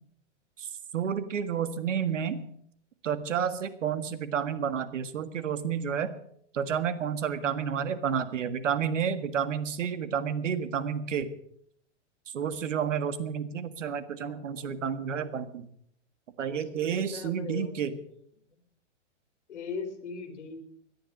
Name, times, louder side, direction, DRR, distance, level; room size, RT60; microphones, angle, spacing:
voice 1, 0.6-2.5 3.0-6.1 6.5-11.3 12.3-15.7 16.4-17.9, right 7 dB, 90° right, 12 dB, 1.7 m, -30 dB
voice 2, 14.3-14.8 16.4-17.7 18.1-18.2 18.5-18.6 19.5-20.6, left 5 dB, 70° left, 7 dB, 3.4 m, -40 dB
17.5 x 11.5 x 6.4 m, 0.67 s
hypercardioid pair, 170°, 36 cm